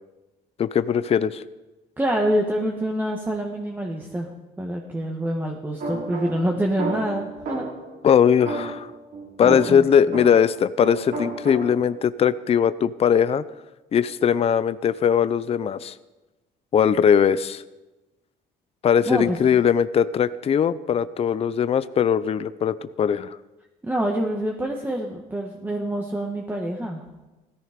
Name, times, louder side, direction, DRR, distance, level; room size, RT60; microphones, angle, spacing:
voice 1, 0.6-1.4 8.0-8.9 9.4-13.4 13.9-15.9 16.7-17.6 18.8-23.4, left 8 dB, 35° left, 14 dB, 0.6 m, -20 dB
voice 2, 2.0-4.3 4.6-7.7 9.4-10.2 19.1-19.4 23.8-27.0, right 1 dB, 10° right, 1 dB, 1.5 m, -26 dB
sound 1, 5.8-7.9 8.4-10.5 10.8-12.0, right 3 dB, 65° right, 5.4 m, -32 dB
16.5 x 14.0 x 5.2 m, 1.1 s
cardioid pair, 110°, 17 cm